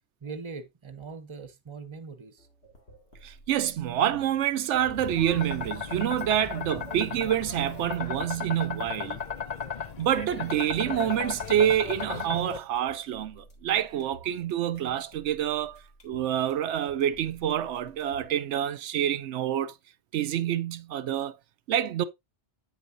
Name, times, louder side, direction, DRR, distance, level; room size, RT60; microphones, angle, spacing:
voice 1, 0.2-2.5, right 4 dB, 30° right, 0.9 m, -41 dB
sound 1, 2.4-18.4, right 1 dB, 75° left, 2.5 m, -54 dB
voice 2, 3.2-9.2 10.0-19.7 20.1-21.3 21.7-22.0, right 10 dB, 90° right, 0.9 m, -27 dB
sound 2, 4.8-12.6, left 6 dB, 45° left, 0.7 m, -36 dB
8.2 x 7.1 x 2.6 m
omnidirectional pair, 1.2 m